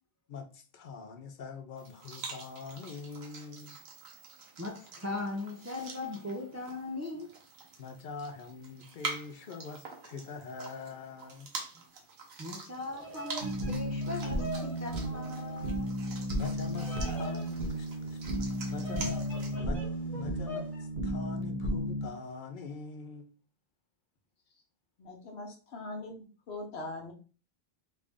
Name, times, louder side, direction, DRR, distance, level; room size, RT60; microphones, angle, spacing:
voice 1, 0.3-3.8 7.8-11.5 16.4-18.2 18.7-19.8 20.1-23.3, left 4 dB, 60° left, 0.6 m, -43 dB
sound 1, 1.8-19.6, right 4 dB, 70° right, 1.1 m, -46 dB
voice 2, 4.6-7.3 12.4-15.9, left 2 dB, 25° right, 0.3 m, -39 dB
Bird vocalization bird call bird song, 12.8-20.8, left 1 dB, ahead, 1.2 m, -45 dB
sound 2, 13.4-22.1, equal, 55° right, 0.7 m, -34 dB
voice 3, 25.0-27.1, left 2 dB, 75° left, 1.1 m, -41 dB
3.2 x 2.6 x 3.5 m
omnidirectional pair, 1.1 m